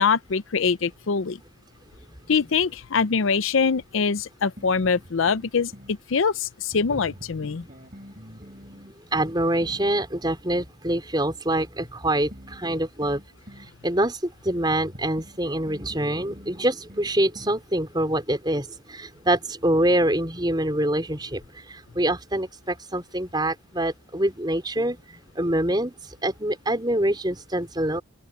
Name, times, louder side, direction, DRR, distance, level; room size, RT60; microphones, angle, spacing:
voice 1, 0.0-1.4 2.3-7.6, left 5 dB, 75° left, 0.6 m, -23 dB
sound 1, 4.6-6.0 6.7-9.9 12.3-13.7 14.5-17.6, equal, 40° right, 4.8 m, -46 dB
voice 2, 9.1-13.2 13.8-14.2 14.4-21.4 21.9-25.0 25.3-25.9 26.2-28.0, right 1 dB, 20° right, 4.8 m, -25 dB
open air
head